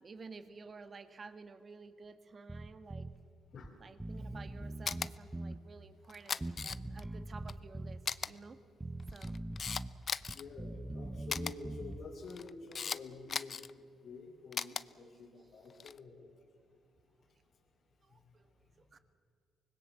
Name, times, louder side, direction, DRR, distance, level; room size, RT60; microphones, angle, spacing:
voice 1, 0.0-3.1 3.8-8.6 9.1-9.4 14.6-14.8 16.6-16.7 18.0-18.5 18.8-19.0, right 4 dB, 40° right, 10 dB, 1.7 m, -52 dB
Bass guitar, 2.5-3.2 3.6-3.7 4.0-5.6 6.4-8.0 8.8-9.9 10.2-12.1, right 1 dB, 10° right, 0.8 m, -42 dB
Camera, 4.9-5.1 6.1-7.0 7.5-7.6 8.1-8.3 9.0-10.4 11.3-11.5 12.3-13.0 13.3-13.7 14.5-14.8 15.7-16.0, left 6 dB, 45° left, 0.6 m, -37 dB
voice 2, 10.3-16.3 18.1-18.2, left 4 dB, 60° left, -1 dB, 3.1 m, -49 dB
25.0 x 20.5 x 7.4 m, 2.5 s
cardioid pair, 90°, 0 cm